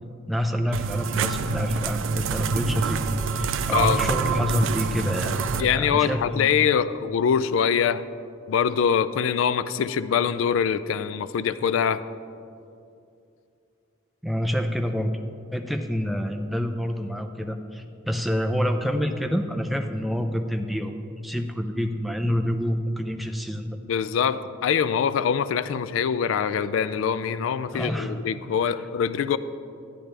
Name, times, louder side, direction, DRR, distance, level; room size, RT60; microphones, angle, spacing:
voice 1, 0.3-3.0 3.4-6.6 14.2-15.2 15.5-23.8 27.7-28.2, equal, ahead, 5 dB, 0.4 m, -27 dB
sound 1, 0.7-5.6, right 4 dB, 90° right, 0.4 m, -26 dB
voice 2, 3.7-4.0 5.6-8.0 8.5-12.0 23.9-29.4, left 7 dB, 90° left, 15 dB, 0.3 m, -24 dB
10.5 x 10.0 x 3.3 m, 2.6 s
head